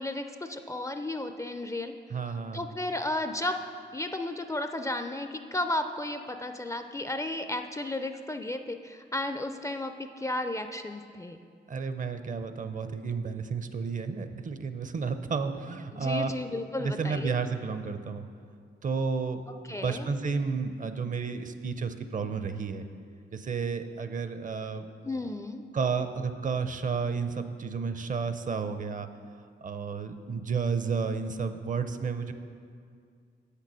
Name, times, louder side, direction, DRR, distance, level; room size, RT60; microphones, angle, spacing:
voice 1, 0.0-1.9 2.5-3.6 3.9-11.4 15.9-17.4 19.7-20.1 25.0-25.6, left 1 dB, 15° left, 7 dB, 0.4 m, -33 dB
voice 2, 2.1-2.6 11.7-16.3 16.8-18.3 18.8-19.4 19.7-22.8 23.3-24.9 25.7-29.1 29.6-32.3, right 5 dB, 45° right, 9 dB, 0.6 m, -31 dB
7.7 x 6.7 x 6.1 m, 2.2 s
cardioid pair, 105°, 19 cm